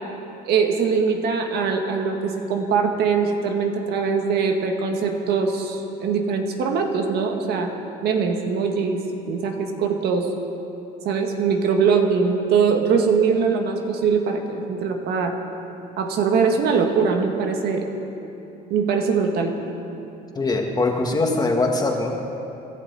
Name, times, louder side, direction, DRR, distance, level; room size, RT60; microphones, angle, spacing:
voice 1, 0.5-7.7 8.0-10.3 11.0-15.4 16.0-17.9 18.7-19.5, right 5 dB, 75° right, 3 dB, 1.7 m, -22 dB
voice 2, 20.3-22.1, left 3 dB, 25° left, 1 dB, 1.9 m, -22 dB
26.0 x 11.5 x 4.1 m, 2.9 s
cardioid pair, 110°, 17 cm